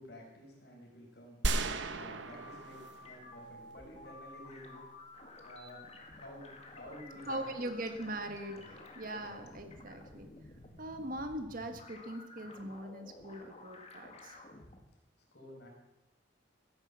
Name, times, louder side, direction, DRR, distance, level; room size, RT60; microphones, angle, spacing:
voice 1, 0.0-1.4 1.9-4.8 5.4-5.8 6.1-7.6 8.5-8.8 9.1-9.6 15.3-15.7, left 1 dB, 60° left, -1 dB, 5.3 m, -52 dB
sound 1, 1.4-3.7, right 3 dB, 75° right, 1.0 m, -36 dB
sound 2, 1.5-14.8, left 2 dB, 35° left, 2.0 m, -53 dB
voice 2, 7.3-8.6 9.0-10.3 10.8-14.4, right 1 dB, 45° right, 7 dB, 1.4 m, -41 dB
15.5 x 10.5 x 7.3 m, 0.99 s
head